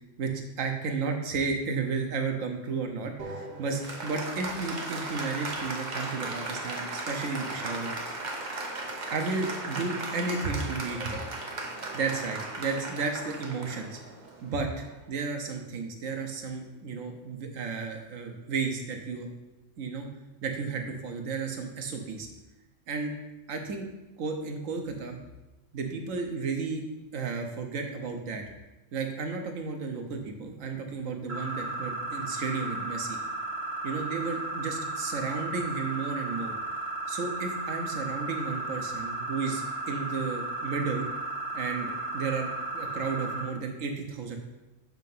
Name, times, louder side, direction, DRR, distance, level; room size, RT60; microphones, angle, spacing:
voice 1, 0.0-7.9 9.1-11.2 11.9-14.0 14.4-19.3 19.8-20.1 20.4-22.3 22.9-23.1 23.5-23.9 24.2-25.2 25.7-26.8 27.1-28.4 28.9-33.2 33.8-36.5 37.1-41.0 41.5-44.4, right 4 dB, 85° right, 4 dB, 1.2 m, -33 dB
Applause, 3.2-15.1, right 2 dB, 40° right, 0.9 m, -37 dB
sound 1, 31.3-43.4, right 2 dB, 60° right, 1.2 m, -34 dB
7.6 x 2.8 x 5.4 m, 1.1 s
omnidirectional pair, 1.3 m